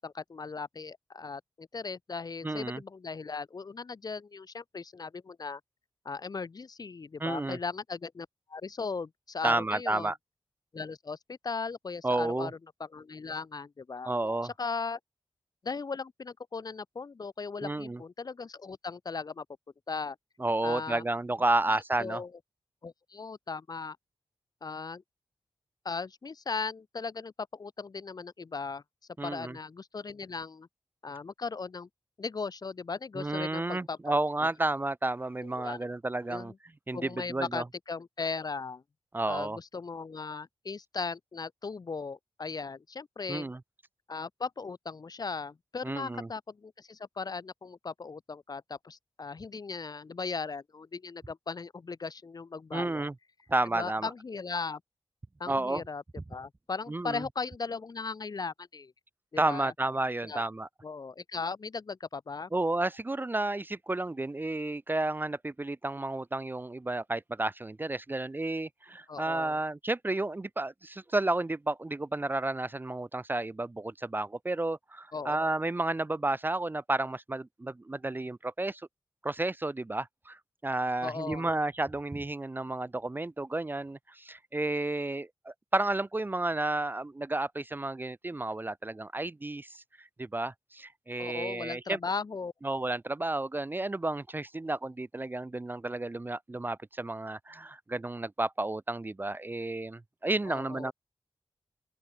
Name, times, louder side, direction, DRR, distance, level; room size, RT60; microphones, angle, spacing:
voice 1, 0.0-5.6 6.0-10.1 10.7-14.1 14.4-15.0 15.6-19.5 19.9-20.2 20.6-21.0 22.0-22.3 22.8-24.0 24.6-25.0 25.8-28.8 29.2-30.7 31.0-31.9 32.2-34.5 35.4-35.8 36.3-36.6 36.9-38.8 39.3-43.5 44.1-53.1 53.7-54.8 55.4-56.0 56.3-58.9 59.3-59.7 60.2-60.5 60.8-62.5 69.1-69.6 75.1-75.4 81.0-81.5 91.2-92.5 100.5-100.9, left 4 dB, 45° left, 0.6 m, -38 dB
voice 2, 2.4-2.8 7.2-7.6 9.4-10.2 12.0-12.5 14.0-14.5 17.6-18.0 20.4-22.2 29.2-29.6 33.2-36.5 36.9-37.6 39.1-39.6 43.3-43.6 45.8-46.3 52.7-53.1 53.5-54.1 55.5-55.8 56.9-57.2 59.4-60.7 62.5-78.8 79.2-92.0 92.6-100.9, right 2 dB, 20° right, 0.5 m, -31 dB
open air
wide cardioid pair, 75°, 9 cm